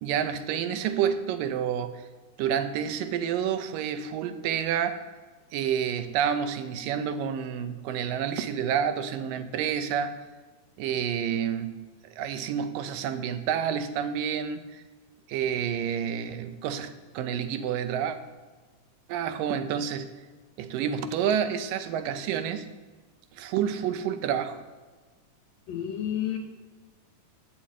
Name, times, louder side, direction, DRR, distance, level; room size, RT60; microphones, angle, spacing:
voice 1, 0.0-2.1 2.4-5.0 5.5-10.1 10.8-14.8 15.3-18.2 19.1-20.1 20.6-22.7 23.3-24.6, right 8 dB, 80° right, 9 dB, 2.4 m, -29 dB
voice 2, 25.7-26.4, left 10 dB, 65° left, 4 dB, 1.8 m, -30 dB
11.0 x 5.9 x 8.5 m, 1.4 s
omnidirectional pair, 3.9 m